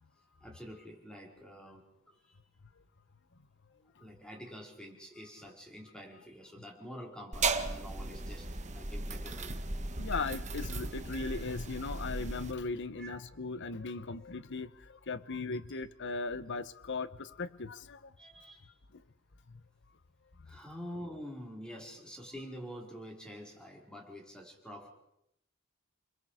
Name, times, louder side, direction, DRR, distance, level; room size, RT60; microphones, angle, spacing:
voice 1, 0.2-2.4 4.0-9.5 13.0-13.2 18.2-18.7 20.4-24.9, equal, 5° left, 4.8 m, -47 dB
sound 1, 7.3-12.5, right 3 dB, 35° right, 1.6 m, -36 dB
voice 2, 10.0-18.0, left 4 dB, 60° left, 0.9 m, -38 dB
29.5 x 22.0 x 5.0 m
head